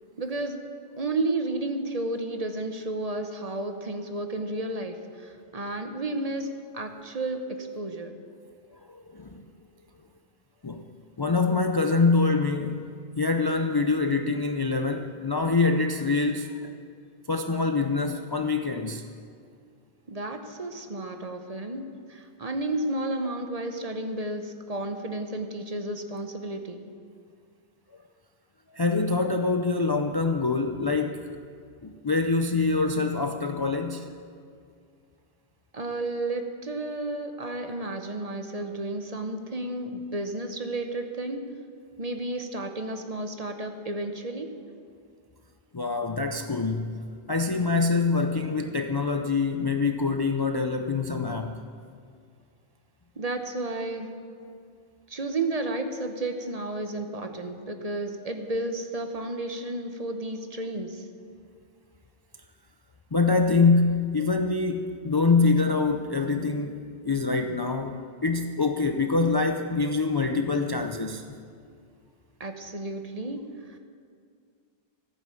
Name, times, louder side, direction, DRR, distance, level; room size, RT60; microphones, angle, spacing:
voice 1, 0.2-0.6 1.0-6.5 6.7-8.1 20.1-26.8 35.7-41.4 42.0-44.5 53.2-54.1 55.1-61.0 72.4-73.8, right 2 dB, 40° right, 6 dB, 1.0 m, -32 dB
voice 2, 8.9-9.5 10.6-10.9 11.2-16.7 17.3-19.0 28.7-31.4 31.8-34.1 45.7-51.6 63.1-66.8 67.0-71.2, left 4 dB, 30° left, 5 dB, 0.4 m, -25 dB
14.5 x 9.5 x 7.0 m, 2.2 s
omnidirectional pair, 1.1 m